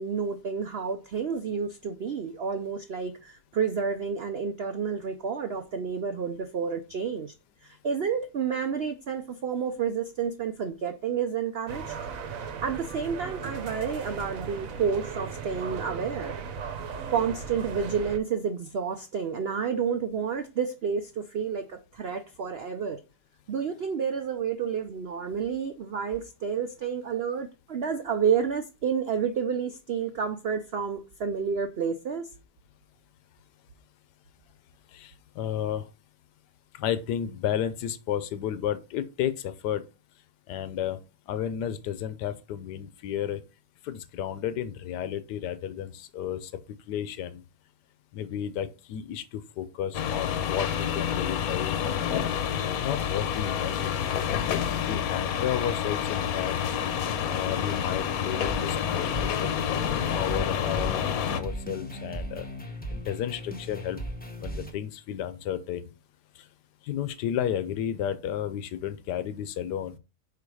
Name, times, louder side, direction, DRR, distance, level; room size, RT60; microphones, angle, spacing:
voice 1, 0.0-7.3 7.6-11.9 12.6-16.4 17.1-23.0 23.5-32.3, right 6 dB, 75° right, 0.5 m, -30 dB
sound 1, 11.7-18.2, right 6 dB, 60° right, 1.1 m, -37 dB
voice 2, 34.9-35.9 36.7-39.8 40.5-41.0 41.3-43.4 43.8-46.5 46.9-47.4 48.1-51.8 52.8-54.0 54.5-56.6 57.3-61.1 61.3-62.5 62.9-64.0 64.4-65.9 66.4-66.5 66.8-70.0, left 10 dB, 85° left, 1.3 m, -32 dB
sound 2, 49.9-61.4, left 8 dB, 65° left, 1.1 m, -28 dB
sound 3, 58.4-64.7, right 1 dB, 10° left, 0.5 m, -38 dB
5.1 x 4.7 x 4.7 m
omnidirectional pair, 1.7 m